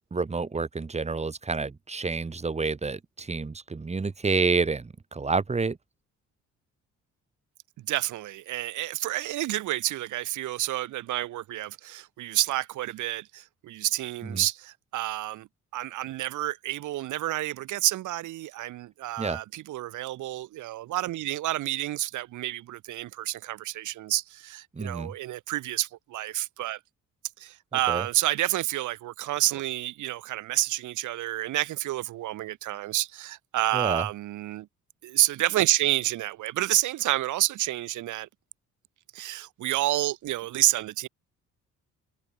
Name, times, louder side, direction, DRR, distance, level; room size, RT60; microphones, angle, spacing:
voice 1, 0.1-5.8 14.2-14.4 19.2-19.4 24.7-25.1 27.9-28.1 33.7-34.1, right 4 dB, 20° right, 1.3 m, -29 dB
voice 2, 7.8-26.8 27.4-34.7 35.0-38.3 39.1-41.1, right 15 dB, 80° right, 1.1 m, -29 dB
cardioid pair, 90°, 30 cm